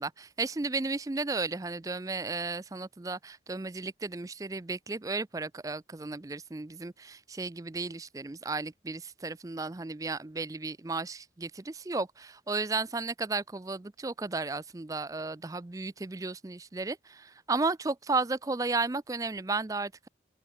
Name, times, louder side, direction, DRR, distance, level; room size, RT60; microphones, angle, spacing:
voice 1, 0.0-20.1, right 3 dB, 20° right, 0.4 m, -34 dB
open air
head